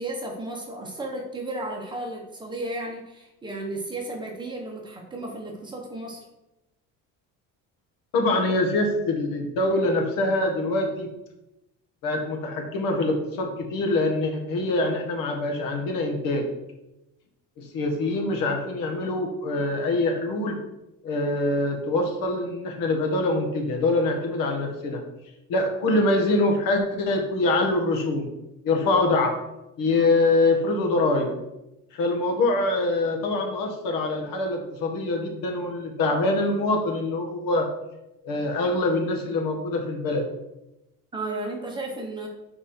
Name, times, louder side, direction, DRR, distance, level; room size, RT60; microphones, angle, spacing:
voice 1, 0.0-6.3 41.1-42.3, right 2 dB, 15° right, 0 dB, 1.1 m, -34 dB
voice 2, 8.1-11.1 12.0-16.4 17.6-20.6 21.0-25.0 25.5-28.3 28.6-29.4 29.8-31.3 31.9-37.7 38.2-40.2, left 2 dB, 85° left, 2 dB, 1.6 m, -24 dB
7.2 x 4.8 x 4.4 m, 0.93 s
cardioid pair, 170°, 33 cm